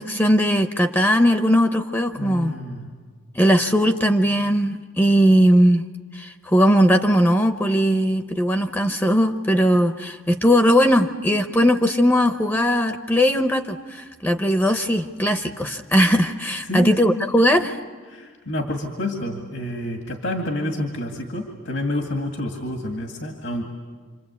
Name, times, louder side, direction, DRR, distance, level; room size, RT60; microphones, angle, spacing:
voice 1, 0.0-2.5 3.3-5.8 6.1-17.8, equal, 10° left, 7 dB, 0.7 m, -19 dB
voice 2, 2.2-2.9 16.7-17.3 18.1-23.6, left 1 dB, 70° left, 3 dB, 2.3 m, -28 dB
27.0 x 27.0 x 8.3 m, 1.5 s
head